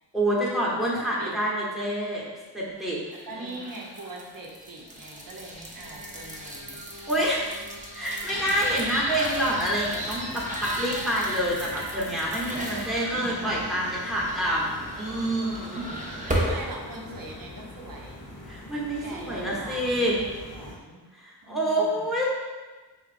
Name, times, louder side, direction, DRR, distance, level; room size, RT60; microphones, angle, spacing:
voice 1, 0.1-2.2 2.5-3.0 3.4-3.5 7.1-7.7 7.9-15.8 18.5-20.1 21.5-22.2, equal, ahead, -6 dB, 0.9 m, -27 dB
voice 2, 0.9-1.4 3.1-6.8 15.7-18.3 19.0-21.1 21.4-22.2, right 2 dB, 55° right, -1 dB, 0.7 m, -42 dB
sound 1, 3.1-16.7, right 1 dB, 20° right, 0.6 m, -35 dB
Singing, 5.7-13.3, equal, 80° left, 1.5 m, -45 dB
sound 2, 8.3-20.8, left 2 dB, 50° left, 0.7 m, -43 dB
4.7 x 2.9 x 2.5 m, 1.3 s
wide cardioid pair, 90°, 40 cm